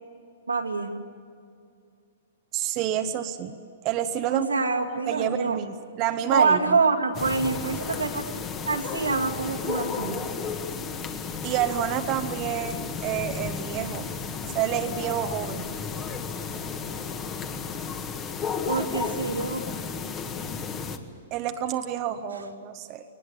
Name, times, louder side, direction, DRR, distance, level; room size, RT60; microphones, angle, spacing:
voice 1, 0.5-1.0 4.3-5.6 6.3-8.4 8.6-10.3 18.7-19.7, right 4 dB, 85° right, 1 dB, 2.4 m, -26 dB
voice 2, 2.5-3.6 3.8-4.5 5.1-6.8 11.4-14.1 14.4-15.7 21.3-23.0, right 10 dB, 35° right, 7 dB, 1.1 m, -29 dB
sound 1, 7.1-21.0, left 5 dB, 25° left, 1.7 m, -33 dB
22.0 x 20.0 x 8.7 m, 2.4 s
figure-of-eight pair, 115°, 0 cm